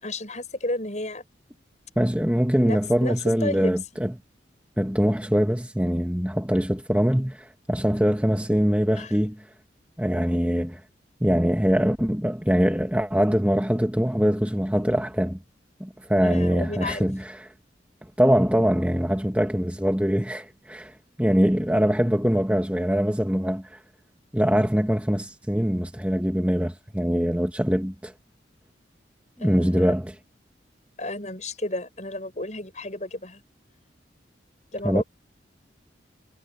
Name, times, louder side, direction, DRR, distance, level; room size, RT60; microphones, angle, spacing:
voice 1, 0.0-1.2 2.6-3.7 8.9-9.1 16.2-17.1 29.4-30.0 31.0-33.4 34.7-35.0, left 2 dB, 40° left, 7.3 m, -32 dB
voice 2, 2.0-4.1 4.8-9.4 10.0-10.8 11.2-15.4 15.8-17.5 18.2-23.8 24.3-28.1 29.4-30.1 34.8-35.0, equal, 5° right, 2.2 m, -23 dB
head